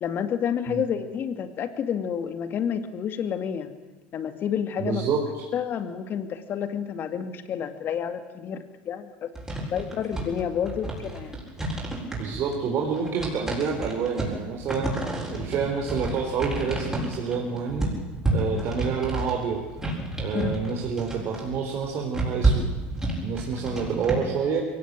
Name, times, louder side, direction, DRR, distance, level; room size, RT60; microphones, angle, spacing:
voice 1, 0.0-3.7 4.1-5.0 5.5-9.3 9.7-11.4 18.6-18.7 20.3-20.5 23.7-23.8, left 8 dB, 45° left, 9 dB, 2.4 m, -29 dB
voice 2, 4.8-5.4 12.1-14.9 15.3-17.9 18.3-19.6 20.2-22.7 23.2-24.6, right 6 dB, 50° right, 0 dB, 4.1 m, -28 dB
sound 1, 9.4-24.1, right 2 dB, 10° right, 7.5 m, -30 dB
22.5 x 18.0 x 9.1 m, 1.2 s
supercardioid pair, 105°, 5 cm